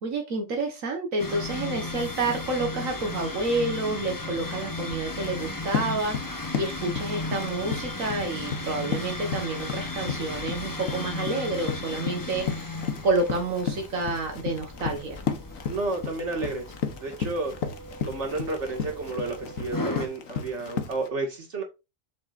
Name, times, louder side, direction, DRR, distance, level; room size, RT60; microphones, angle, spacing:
voice 1, 0.0-12.8 13.0-15.2, right 2 dB, 85° right, 1.9 m, -29 dB
sound 1, 1.2-20.1, left 2 dB, 15° left, 0.9 m, -36 dB
Run, 5.1-21.1, left 6 dB, 85° left, 1.5 m, -34 dB
voice 2, 15.7-16.7 17.0-17.5 18.0-21.6, right 2 dB, 60° right, 2.4 m, -31 dB
7.6 x 7.1 x 2.6 m
omnidirectional pair, 1.4 m